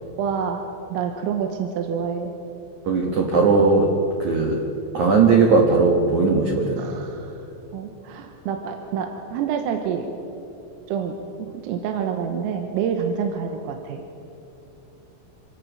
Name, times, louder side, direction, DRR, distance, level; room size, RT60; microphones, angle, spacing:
voice 1, 0.2-0.6 0.9-2.3 6.8-7.3 7.7-10.1 10.9-14.0, right 7 dB, 90° right, 4 dB, 3.8 m, -27 dB
voice 2, 2.9-3.9 4.2-4.6 4.9-6.8, right 4 dB, 75° right, 1 dB, 1.8 m, -18 dB
27.0 x 17.0 x 6.2 m, 2.8 s
omnidirectional pair, 5.9 m